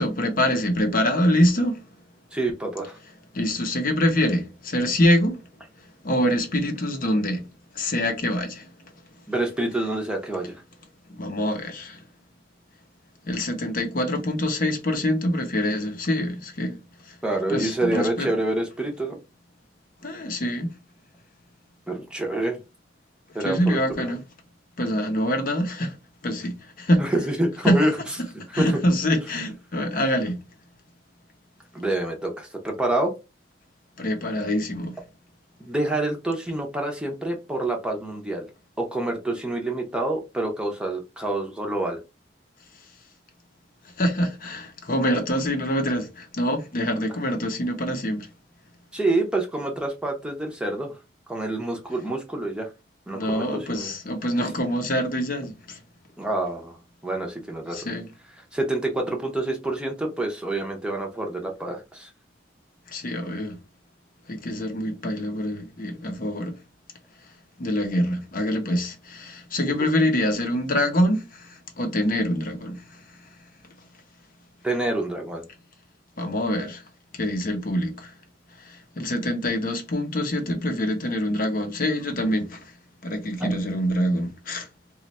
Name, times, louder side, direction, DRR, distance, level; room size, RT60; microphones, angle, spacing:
voice 1, 0.0-1.9 3.3-5.4 6.0-7.5 7.7-8.7 11.1-12.0 13.2-16.8 17.0-17.2 17.5-18.3 20.0-20.7 23.4-24.2 24.8-25.9 26.2-27.1 27.6-27.9 28.5-30.4 34.0-35.0 44.0-48.3 53.1-55.8 57.7-58.1 62.9-63.6 64.3-66.6 67.6-73.0 76.2-76.8 77.1-78.1 78.6-82.7 83.0-84.7, equal, 50° left, 0.7 m, -25 dB
voice 2, 2.3-3.0 9.3-10.6 17.2-19.2 21.9-22.6 23.3-24.1 27.0-27.9 28.6-28.8 31.7-33.1 35.6-38.5 38.8-42.0 48.9-50.9 51.3-52.7 53.1-53.9 56.2-56.8 57.0-57.8 58.5-62.1 74.6-75.5 83.4-83.5, right 2 dB, 5° right, 0.7 m, -27 dB
3.0 x 2.4 x 4.1 m
head